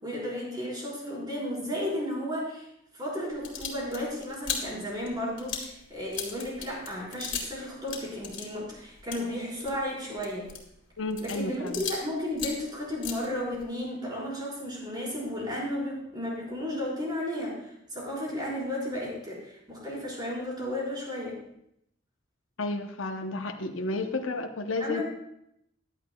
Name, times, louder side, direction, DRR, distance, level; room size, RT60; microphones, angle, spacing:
voice 1, 0.0-2.7 2.9-10.5 11.2-17.6 17.9-21.4 24.8-25.0, left 1 dB, 20° right, -5 dB, 4.6 m, -33 dB
sound 1, 3.3-7.6 7.8-12.1 12.3-13.8, left 7 dB, 65° left, 2.3 m, -38 dB
voice 2, 11.0-11.8 22.6-25.0, left 2 dB, 80° left, 5 dB, 0.9 m, -32 dB
15.5 x 11.0 x 2.3 m, 0.77 s
head